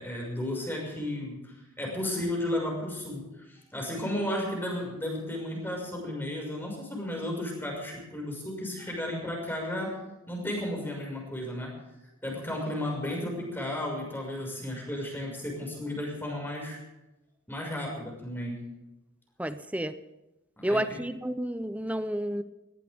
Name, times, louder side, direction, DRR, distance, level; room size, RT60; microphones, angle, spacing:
voice 1, 0.0-10.0 10.3-11.7 12.2-16.8 17.5-18.6 20.6-20.8, left 1 dB, 10° left, 0 dB, 6.1 m, -34 dB
voice 2, 19.4-19.9 20.6-22.4, right 1 dB, 5° right, 11 dB, 0.7 m, -30 dB
19.0 x 18.5 x 3.6 m, 1.0 s
head